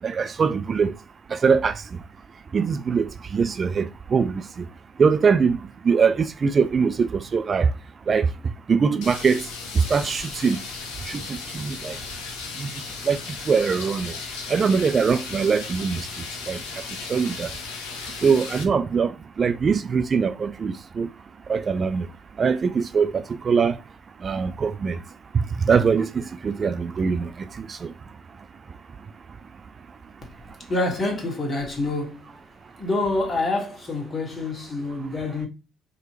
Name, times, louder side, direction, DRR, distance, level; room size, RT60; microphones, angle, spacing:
voice 1, 0.0-1.0 1.3-2.0 2.5-4.7 5.0-7.7 8.1-10.6 11.0-12.0 12.5-14.2 14.5-16.8 17.1-17.5 18.2-21.1 21.5-22.1 22.4-23.8 24.2-25.0 25.3-27.9 28.7-28.8, right 5 dB, 40° right, 0.3 m, -23 dB
sound 1, 9.0-18.6, left 4 dB, 65° left, 0.7 m, -36 dB
voice 2, 30.6-32.3 32.8-35.5, left 2 dB, 35° left, 1.7 m, -27 dB
4.6 x 3.0 x 3.0 m
figure-of-eight pair, 50°, 0 cm